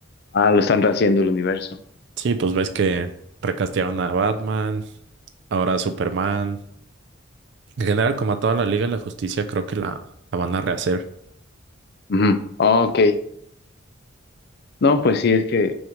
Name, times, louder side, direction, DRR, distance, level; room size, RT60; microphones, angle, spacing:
voice 1, 0.3-1.7 12.1-13.1 14.8-15.7, left 4 dB, 55° left, 10 dB, 0.5 m, -18 dB
voice 2, 2.2-3.1 3.4-4.8 5.5-6.6 7.8-10.0 10.3-11.0, right 4 dB, 60° right, 9 dB, 0.4 m, -23 dB
6.3 x 3.0 x 5.0 m, 0.72 s
head